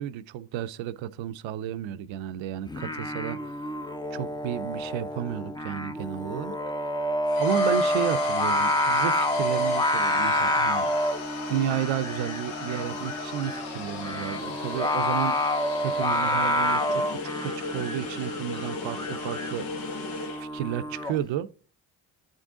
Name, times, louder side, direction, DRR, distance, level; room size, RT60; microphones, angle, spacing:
voice 1, 0.0-3.7 4.1-6.6 7.0-7.1 7.4-10.9 11.5-15.4 15.8-19.7 20.4-21.5, right 11 dB, 70° right, 0.6 m, -32 dB
Singing, 2.7-21.2, left 1 dB, 10° left, 0.5 m, -28 dB
sound 1, 7.3-20.5, left 4 dB, 85° left, 1.0 m, -36 dB
9.0 x 3.7 x 3.7 m
supercardioid pair, 50°, 48 cm